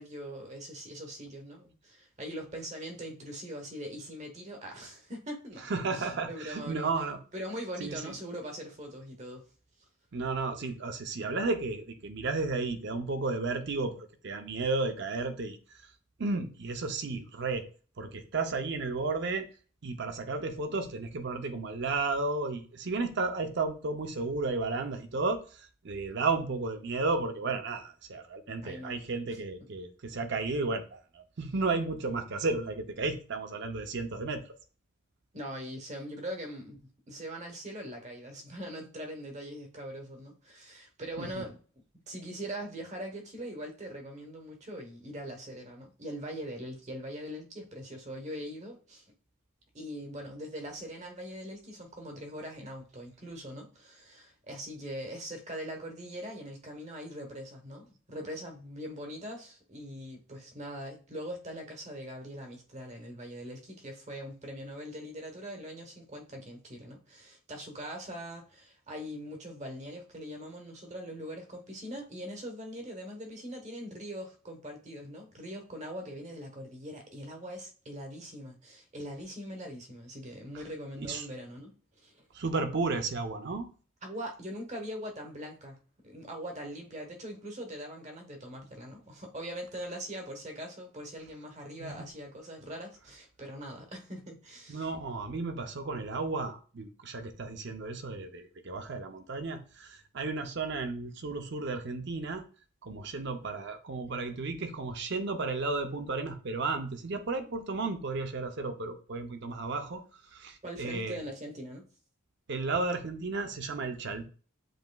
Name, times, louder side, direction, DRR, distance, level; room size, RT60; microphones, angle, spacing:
voice 1, 0.0-6.9 7.3-9.5 28.6-29.0 29.2-29.4 35.3-41.6 42.1-49.1 49.7-82.2 84.0-85.8 86.0-94.9 110.6-111.9, equal, 30° right, 3 dB, 1.0 m, -42 dB
voice 2, 5.6-7.2 7.8-8.1 10.1-15.6 16.2-17.7 18.0-19.5 19.8-34.4 41.2-41.4 81.0-81.3 82.3-83.7 91.8-91.9 94.7-102.4 102.8-110.0 110.3-111.2 112.5-114.3, right 3 dB, 55° right, 7 dB, 0.6 m, -33 dB
7.8 x 2.9 x 2.3 m, 0.39 s
head